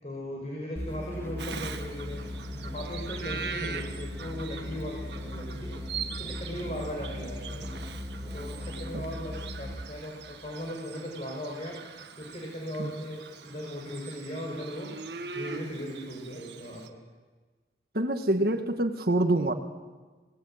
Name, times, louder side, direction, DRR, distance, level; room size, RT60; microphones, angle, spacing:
voice 1, 0.0-2.2 2.6-5.7 6.0-7.7 8.3-11.8 12.2-14.9 15.3-17.0, equal, 40° left, -1 dB, 5.6 m, -38 dB
sound 1, 0.8-9.9, left 1 dB, 15° left, 3.3 m, -38 dB
Bird vocalization bird call bird song, 1.4-16.9, right 5 dB, 80° right, 1.6 m, -42 dB
voice 2, 17.9-19.5, right 1 dB, 55° right, 6 dB, 1.6 m, -26 dB
26.0 x 19.5 x 8.9 m, 1.3 s
head